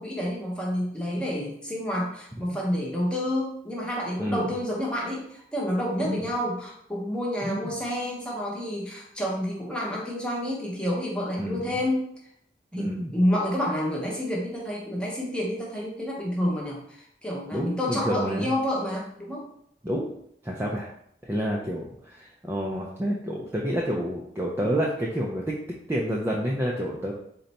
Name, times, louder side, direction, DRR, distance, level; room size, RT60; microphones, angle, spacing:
voice 1, 0.0-12.1 12.7-19.4, equal, 5° left, -4 dB, 0.8 m, -29 dB
voice 2, 4.2-4.5 6.0-6.3 7.4-7.7 11.4-11.7 12.7-13.2 17.5-18.5 19.8-20.1 20.4-20.9 21.2-25.6 25.9-27.1, equal, 15° right, -3 dB, 0.3 m, -29 dB
3.8 x 2.2 x 4.0 m, 0.70 s
head